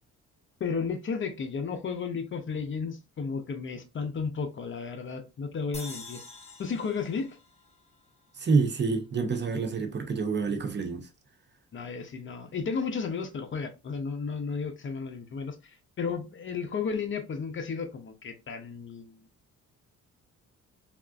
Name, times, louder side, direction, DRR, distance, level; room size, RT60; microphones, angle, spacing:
voice 1, 0.6-6.2 6.6-7.4 11.7-19.2, left 5 dB, 40° left, 0.6 m, -33 dB
sound 1, 5.7-9.0, left 3 dB, 20° left, 1.0 m, -47 dB
voice 2, 8.4-11.1, right 4 dB, 35° right, 0.8 m, -27 dB
3.4 x 2.4 x 2.3 m
cardioid pair, 90°, 30 cm